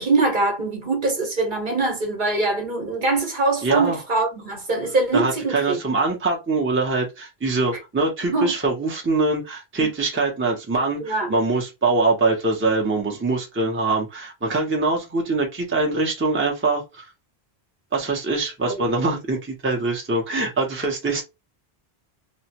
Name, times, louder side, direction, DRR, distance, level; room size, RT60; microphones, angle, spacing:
voice 1, 0.0-5.8 8.3-8.5 9.8-9.9 11.0-11.3 18.6-18.7, right 3 dB, 50° right, 1.1 m, -23 dB
voice 2, 3.6-4.0 5.1-17.1 17.9-21.2, right 3 dB, 15° right, 0.6 m, -23 dB
3.0 x 2.1 x 2.8 m
omnidirectional pair, 1.1 m